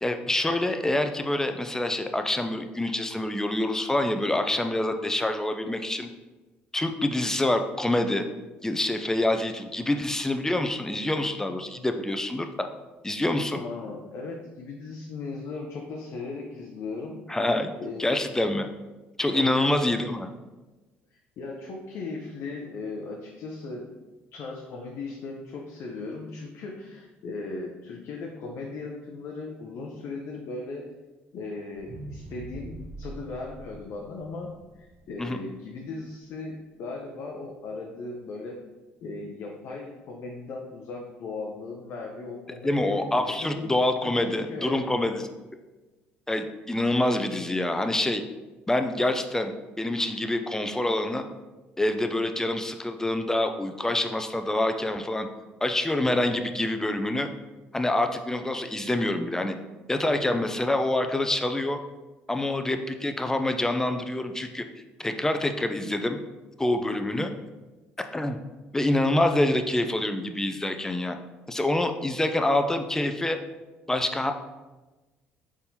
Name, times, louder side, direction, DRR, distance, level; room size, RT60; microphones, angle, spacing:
voice 1, 0.0-6.1 6.7-8.2 8.6-12.7 13.0-13.6 17.3-17.7 18.0-18.7 19.2-20.3 35.2-35.4 42.6-45.2 46.3-48.2 48.7-51.3 51.8-55.3 55.6-57.3 57.7-59.6 59.9-61.8 62.3-64.7 65.0-66.2 66.6-67.3 68.0-68.4 68.7-71.2 71.5-73.4 73.9-74.3, left 1 dB, 10° left, 7 dB, 0.4 m, -26 dB
voice 2, 13.5-17.2 17.8-18.1 19.3-19.9 21.1-23.9 24.3-30.9 31.3-34.5 34.7-38.6 39.0-43.7 44.0-45.1, left 3 dB, 60° left, 0 dB, 0.6 m, -37 dB
sound 1, 31.7-36.0 36.5-36.6, right 2 dB, 45° right, 0.7 m, -43 dB
4.1 x 3.5 x 2.8 m, 1.2 s
supercardioid pair, 65°, 5 cm